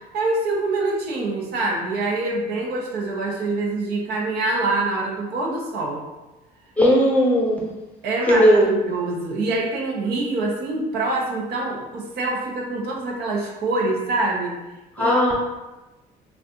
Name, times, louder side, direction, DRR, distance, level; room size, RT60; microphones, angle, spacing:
voice 1, 0.1-6.0 8.0-8.4 8.7-14.6 15.0-15.1, right 2 dB, 70° right, -2 dB, 0.8 m, -25 dB
voice 2, 6.8-7.7 8.3-8.7 15.0-15.4, equal, 10° left, -4 dB, 0.8 m, -17 dB
2.6 x 2.3 x 3.6 m, 1.1 s
cardioid pair, 110°, 17 cm